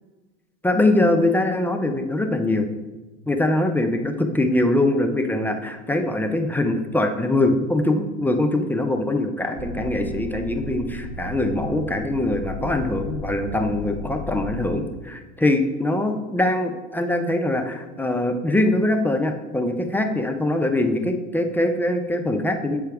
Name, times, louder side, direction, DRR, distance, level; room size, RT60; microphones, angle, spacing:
voice 1, 0.6-2.7 3.3-22.8, left 1 dB, 5° left, 4 dB, 0.4 m, -22 dB
sound 1, 9.6-14.8, left 2 dB, 15° right, 0.9 m, -34 dB
7.7 x 4.6 x 3.5 m, 1.2 s
hypercardioid pair, 100°, 39 cm